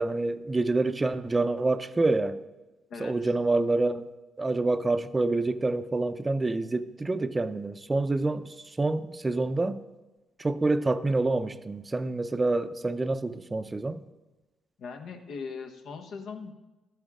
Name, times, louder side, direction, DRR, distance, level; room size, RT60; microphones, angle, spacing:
voice 1, 0.0-2.4 3.0-4.1 4.4-9.8 10.4-14.0, right 2 dB, 25° right, 0.6 m, -27 dB
voice 2, 14.8-16.5, left 5 dB, 70° left, 1.1 m, -39 dB
12.0 x 8.9 x 3.7 m
supercardioid pair, 65°, 0 cm